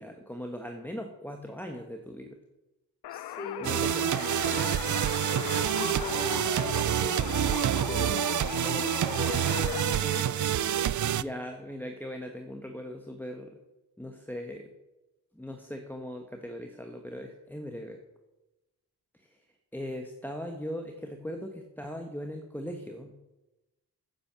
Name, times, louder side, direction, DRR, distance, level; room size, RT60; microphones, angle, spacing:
voice 1, 0.0-2.4 3.6-4.7 11.0-13.6 14.0-14.7 15.3-18.0 19.1-19.4 19.7-23.2, equal, 5° left, 3 dB, 1.2 m, -39 dB
sound 1, 3.0-10.2, left 12 dB, 75° left, 0.6 m, -38 dB
voice 2, 3.1-4.2 5.8-8.3 8.6-10.9, left 2 dB, 25° left, -1 dB, 5.2 m, -39 dB
sound 2, 3.6-11.2, right 11 dB, 50° right, 0.5 m, -27 dB
9.8 x 8.9 x 6.8 m, 1.0 s
cardioid pair, 70°, 39 cm